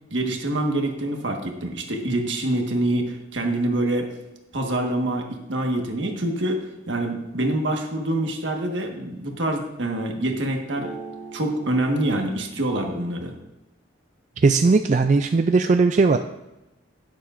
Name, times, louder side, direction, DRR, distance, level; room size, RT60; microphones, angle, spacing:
voice 1, 0.1-4.1 4.5-10.9 11.3-13.3, right 1 dB, 70° right, 2 dB, 1.5 m, -25 dB
sound 1, 7.6-7.7 10.8-12.2, right 4 dB, 85° right, 2.8 m, -40 dB
voice 2, 14.4-16.2, right 4 dB, 40° right, 7 dB, 0.3 m, -18 dB
11.5 x 10.0 x 2.5 m, 0.95 s
head